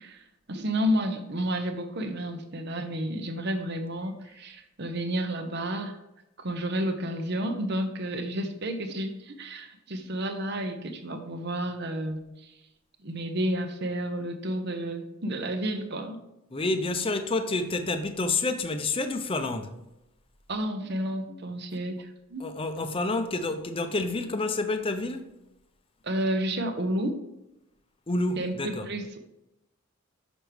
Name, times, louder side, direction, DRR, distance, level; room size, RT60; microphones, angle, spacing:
voice 1, 0.0-6.0 6.4-12.5 13.0-16.2 20.5-22.5 26.0-27.2 28.4-29.2, right 1 dB, 55° right, 0.8 m, -31 dB
voice 2, 16.5-19.8 22.4-25.3 28.1-28.9, left 2 dB, 25° left, 0.6 m, -29 dB
6.1 x 6.0 x 3.4 m
head